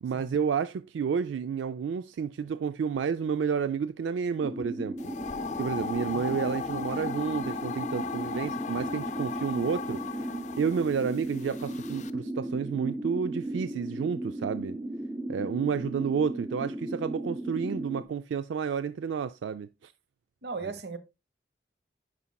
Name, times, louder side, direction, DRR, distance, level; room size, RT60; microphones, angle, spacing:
voice 1, 0.0-5.0 5.6-14.8 15.3-19.9, right 6 dB, 90° right, 0.3 m, -31 dB
sound 1, 4.4-18.0, right 1 dB, 15° right, 0.7 m, -36 dB
sound 2, 5.0-12.1, left 6 dB, 40° left, 0.4 m, -37 dB
voice 2, 6.1-6.6 20.4-21.0, right 4 dB, 65° right, 0.9 m, -38 dB
11.0 x 4.1 x 2.2 m
head